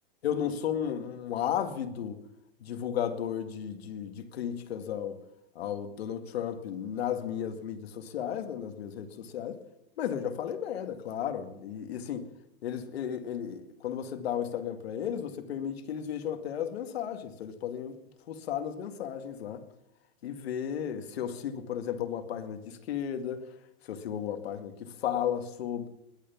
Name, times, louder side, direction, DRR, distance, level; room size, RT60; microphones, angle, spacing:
voice 1, 0.2-2.2 2.6-5.2 5.6-9.6 10.0-12.3 12.6-17.9 18.3-19.6 20.2-23.5 23.9-25.9, left 9 dB, 85° left, 2.2 m, -34 dB
20.0 x 9.4 x 7.2 m
supercardioid pair, 160°, 31 cm